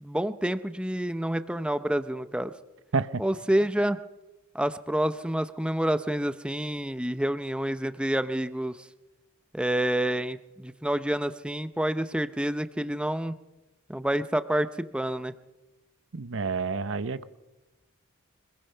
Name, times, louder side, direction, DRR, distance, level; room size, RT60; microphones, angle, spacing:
voice 1, 0.0-2.5 3.2-4.0 4.5-8.8 9.5-13.4 13.9-15.3, right 1 dB, 5° right, 0.6 m, -28 dB
voice 2, 16.1-17.2, right 4 dB, 60° right, 0.8 m, -29 dB
24.5 x 21.0 x 5.7 m
head